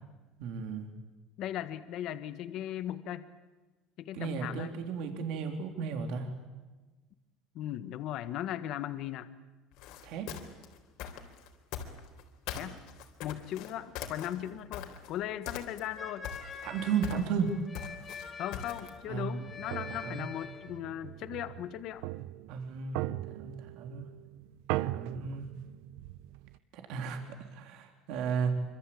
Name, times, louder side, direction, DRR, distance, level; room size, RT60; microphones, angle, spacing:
voice 1, 0.4-0.9 4.1-6.3 10.0-10.3 16.6-17.5 19.1-19.3 20.0-20.3 22.5-23.0 23.4-24.1 24.8-25.5 26.7-27.2 27.5-28.5, right 6 dB, 60° right, 5 dB, 3.4 m, -34 dB
voice 2, 1.4-3.2 4.0-4.7 7.5-9.3 12.5-12.8 13.2-16.3 18.4-22.1, left 12 dB, 45° left, 11 dB, 1.5 m, -38 dB
sound 1, 9.7-12.2 12.5-15.2 15.5-16.0 16.2-19.0, left 9 dB, 65° left, 3.8 m, -41 dB
sound 2, 16.0-20.8, left 5 dB, 15° left, 2.7 m, -45 dB
sound 3, 19.5-26.6, right 16 dB, 75° right, 0.8 m, -39 dB
26.5 x 25.0 x 8.6 m, 1.2 s
cardioid pair, 170°, 0 cm